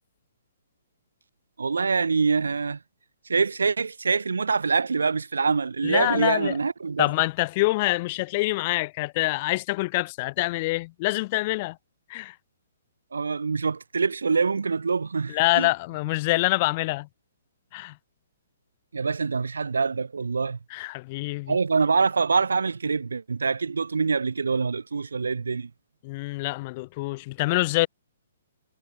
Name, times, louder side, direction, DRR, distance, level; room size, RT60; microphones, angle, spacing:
voice 1, 1.6-2.8 3.3-7.1 13.1-15.7 18.9-20.6 21.5-25.7, right 4 dB, 85° right, 0.7 m, -25 dB
voice 2, 5.8-6.6 7.0-11.8 12.1-12.3 15.3-17.1 17.7-17.9 20.7-21.6 26.0-27.9, left 22 dB, 40° left, 1.2 m, -26 dB
hypercardioid pair, 140°, 0 cm